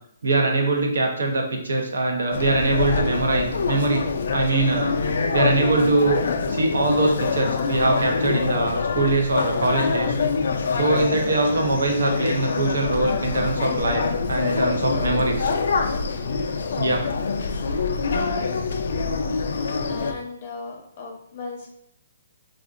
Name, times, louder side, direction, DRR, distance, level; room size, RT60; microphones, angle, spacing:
voice 1, 0.2-4.0 4.3-4.9 5.3-6.2 6.5-10.2 10.7-14.0 14.3-15.5 16.8-17.0, right 2 dB, 80° right, 2 dB, 0.8 m, -22 dB
sound 1, 2.3-20.1, left 4 dB, 50° left, 0.3 m, -25 dB
voice 2, 19.9-21.7, left 3 dB, 25° left, -1 dB, 0.7 m, -36 dB
3.5 x 2.4 x 2.5 m, 0.74 s
hypercardioid pair, 180°, 0 cm